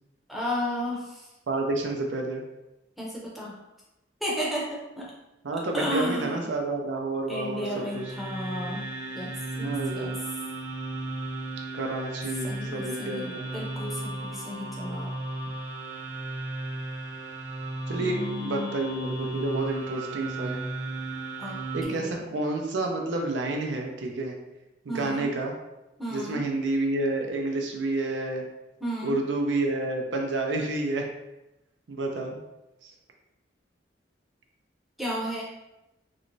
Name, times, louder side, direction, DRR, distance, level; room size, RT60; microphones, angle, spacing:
voice 1, 0.3-1.3 3.0-3.6 4.2-5.1 5.7-6.5 7.3-10.2 12.4-15.1 18.0-18.7 21.4-21.6 21.9-22.2 24.9-25.4 26.0-26.5 28.8-29.2 35.0-35.4, equal, ahead, -5 dB, 0.6 m, -33 dB
voice 2, 1.5-2.4 5.4-8.0 9.6-10.1 11.7-13.5 17.9-20.6 21.7-24.4 24.9-25.5 26.1-28.4 29.0-31.1 31.9-32.4 32.8-32.9, right 2 dB, 80° right, 1 dB, 0.5 m, -29 dB
sound 1, 7.5-21.8, right 2 dB, 60° right, 1.0 m, -35 dB
3.1 x 3.0 x 2.6 m, 0.95 s
head